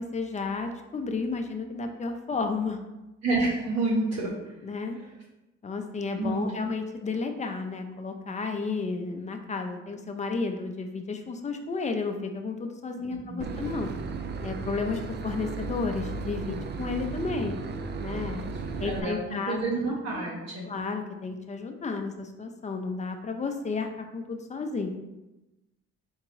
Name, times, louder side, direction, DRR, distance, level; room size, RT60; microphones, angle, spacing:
voice 1, 0.0-2.8 4.6-5.0 5.6-13.9 14.4-17.6 18.0-18.5 18.8-19.6 20.1-20.3 20.7-24.9, left 4 dB, 25° left, 5 dB, 0.5 m, -32 dB
voice 2, 3.2-4.6 5.0-5.1 6.1-6.4 13.1-13.4 18.8-20.7, right 2 dB, 55° right, -4 dB, 0.9 m, -29 dB
Boat Water vehicle / Engine, 13.4-19.0, right 4 dB, 35° right, 0.4 m, -35 dB
3.8 x 3.6 x 3.1 m, 1.0 s
cardioid pair, 90°, 30 cm